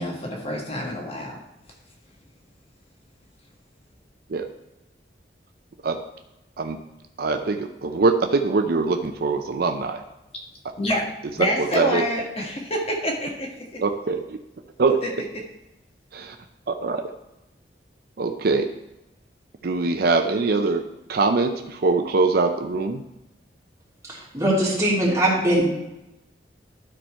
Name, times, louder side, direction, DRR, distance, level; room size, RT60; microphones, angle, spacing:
voice 1, 0.0-1.4 10.8-11.0 11.4-13.8 15.0-15.1, left 1 dB, 35° left, 0 dB, 1.3 m, -27 dB
voice 2, 7.2-10.0 10.9-11.0 11.6-12.1 13.8-14.4 14.8-15.0 16.1-16.4 16.7-17.1 18.2-18.7 19.6-23.0, right 3 dB, 60° right, 6 dB, 0.5 m, -23 dB
voice 3, 24.0-25.7, right 1 dB, 20° right, -6 dB, 2.9 m, -21 dB
12.5 x 4.3 x 4.6 m, 0.94 s
head